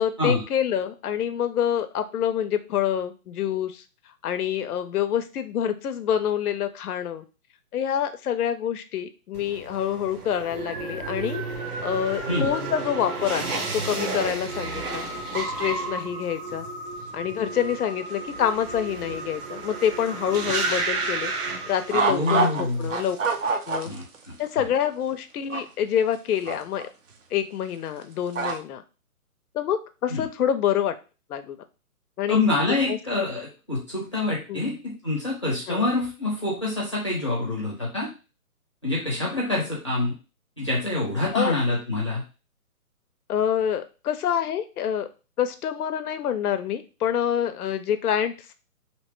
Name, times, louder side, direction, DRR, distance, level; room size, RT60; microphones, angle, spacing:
voice 1, 0.0-3.8 4.2-7.2 7.7-11.4 11.8-15.1 15.3-16.7 17.1-21.3 21.7-23.2 23.7-23.9 24.4-26.9 27.3-28.8 29.5-30.9 31.3-31.6 32.2-32.4 32.9-33.0 34.5-34.8 35.7-35.9 41.3-41.5 43.3-45.1 45.4-48.5, left 9 dB, 75° left, 9 dB, 0.5 m, -26 dB
sound 1, 9.3-22.4 22.7-23.3, right 3 dB, 75° right, 1.0 m, -33 dB
sound 2, 10.5-22.5, right 2 dB, 20° right, 0.8 m, -38 dB
sound 3, 21.9-22.6 22.9-24.2 24.5-24.6 25.5-25.6 26.5-26.8 28.4-28.6, right 4 dB, 60° right, 0.6 m, -24 dB
voice 2, 22.1-22.9 23.8-24.6 30.1-30.2 32.3-38.1 38.8-40.1 40.6-42.2, left 2 dB, 20° left, -5 dB, 0.6 m, -26 dB
2.8 x 2.2 x 3.0 m, 0.32 s
hypercardioid pair, 170°, 45 cm